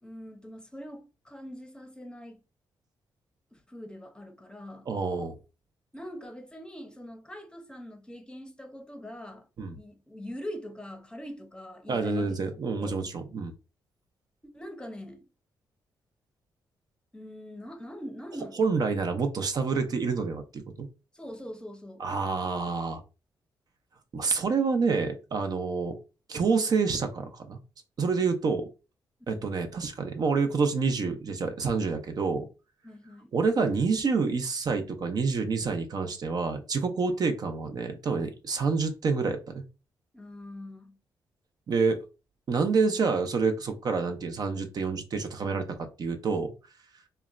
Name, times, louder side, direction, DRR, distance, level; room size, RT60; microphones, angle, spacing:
voice 1, 0.0-2.4 3.5-4.9 5.9-9.5 9.7-12.4 12.8-13.1 14.5-15.2 17.1-18.9 21.1-22.0 29.2-29.5 32.8-33.3 40.1-41.0, equal, 10° left, 0.7 m, -43 dB
voice 2, 4.9-5.4 9.6-9.8 11.9-13.5 18.6-20.9 22.0-23.0 24.1-26.0 26.3-27.6 28.0-28.7 29.3-32.5 33.3-39.6 41.7-42.0 42.5-46.5, right 4 dB, 55° right, 0.5 m, -28 dB
2.9 x 2.1 x 2.4 m
cardioid pair, 75°, 8 cm